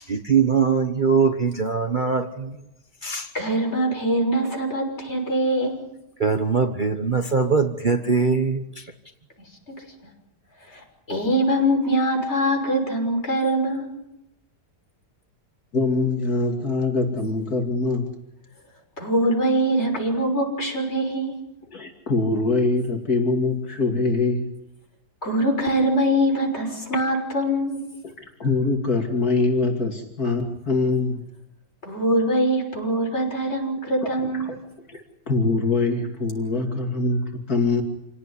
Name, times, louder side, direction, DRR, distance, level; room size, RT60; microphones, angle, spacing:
voice 1, 0.0-2.6 3.0-3.3 6.2-8.9, right 5 dB, 30° right, 5 dB, 1.3 m, -22 dB
voice 2, 3.3-5.8 9.7-9.8 10.7-13.9 19.0-21.4 25.2-27.8 31.8-34.6, right 1 dB, 40° left, 2 dB, 6.5 m, -23 dB
voice 3, 15.7-18.2 21.7-24.5 28.0-31.2 34.0-34.6 34.9-37.8, left 3 dB, 60° left, 3 dB, 3.2 m, -24 dB
28.0 x 18.0 x 10.0 m, 0.89 s
omnidirectional pair, 1.8 m